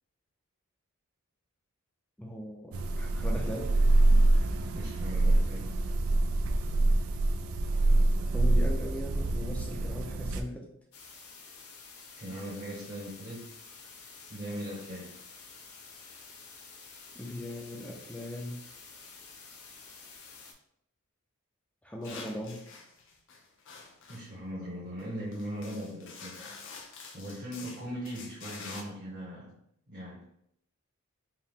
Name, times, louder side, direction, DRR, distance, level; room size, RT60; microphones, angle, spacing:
voice 1, 2.2-3.8 8.2-10.7 17.1-18.7 21.8-22.7, left 1 dB, 5° left, -1 dB, 0.4 m, -39 dB
sound 1, 2.7-10.4, right 2 dB, 70° right, 0.4 m, -25 dB
voice 2, 4.7-5.8 12.2-13.6 14.3-15.2 24.1-26.4 27.1-29.6 29.9-30.3, equal, 40° right, -8 dB, 1.0 m, -39 dB
sound 2, 10.9-20.5, left 4 dB, 90° left, 0.8 m, -50 dB
sound 3, 22.0-24.3 25.0-25.1 25.3-28.8, left 4 dB, 60° left, 0.6 m, -47 dB
4.6 x 2.1 x 3.5 m, 0.72 s
head